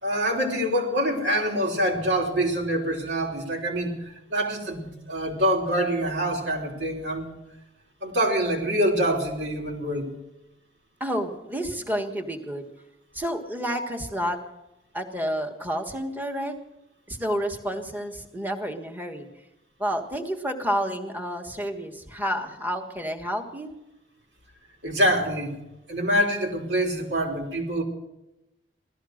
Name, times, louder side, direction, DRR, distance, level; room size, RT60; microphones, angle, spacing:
voice 1, 0.0-7.3 8.0-10.1 24.8-25.6 25.9-27.8, equal, 90° right, 1 dB, 3.4 m, -25 dB
voice 2, 11.0-12.6 13.1-14.4 14.9-16.6 17.1-19.3 19.8-23.7, equal, 10° right, 4 dB, 1.5 m, -30 dB
16.5 x 13.5 x 6.4 m, 0.93 s
head